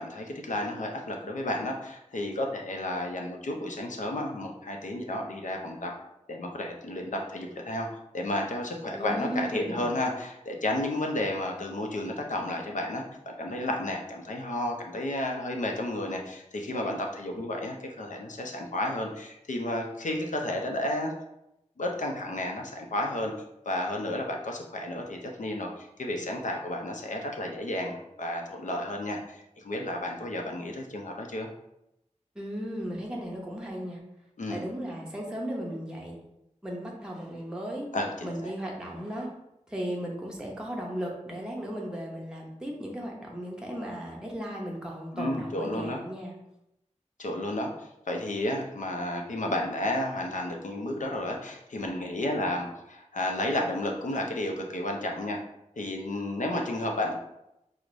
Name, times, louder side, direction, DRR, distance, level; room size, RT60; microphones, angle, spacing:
voice 1, 0.0-5.9 6.3-7.9 8.1-21.1 21.8-23.3 23.7-31.5 34.4-34.6 37.9-38.3 45.1-46.0 47.2-47.7 48.1-55.4 55.8-57.1, left 1 dB, 90° left, 1 dB, 0.5 m, -32 dB
voice 2, 8.9-9.9 32.3-34.0 34.5-36.2 36.6-37.9 38.2-39.3 39.7-46.4, equal, 5° right, -2 dB, 0.6 m, -36 dB
4.6 x 2.1 x 2.5 m, 0.85 s
wide cardioid pair, 65°, 13 cm